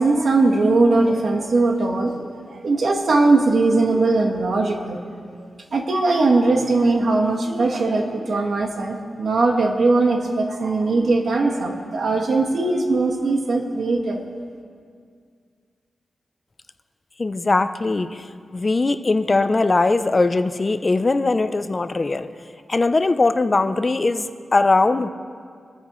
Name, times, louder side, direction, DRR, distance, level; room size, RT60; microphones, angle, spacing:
voice 1, 0.0-5.1 5.7-14.2, right 3 dB, 55° right, 2 dB, 1.3 m, -20 dB
voice 2, 17.2-18.3 18.5-22.3 22.7-25.1, left 3 dB, 25° left, 10 dB, 0.4 m, -20 dB
24.5 x 9.4 x 3.1 m, 2.1 s
wide cardioid pair, 165°, 0 cm